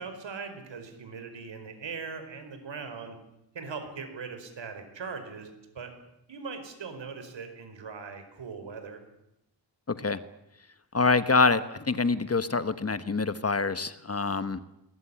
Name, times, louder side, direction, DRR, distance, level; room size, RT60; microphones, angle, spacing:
voice 1, 0.0-3.2 3.5-5.9 6.3-9.0, right 5 dB, 85° right, 7 dB, 5.0 m, -40 dB
voice 2, 9.9-10.2 10.9-14.6, left 4 dB, 35° left, 13 dB, 1.2 m, -25 dB
21.5 x 20.0 x 10.0 m, 0.86 s
wide cardioid pair, 105°, 43 cm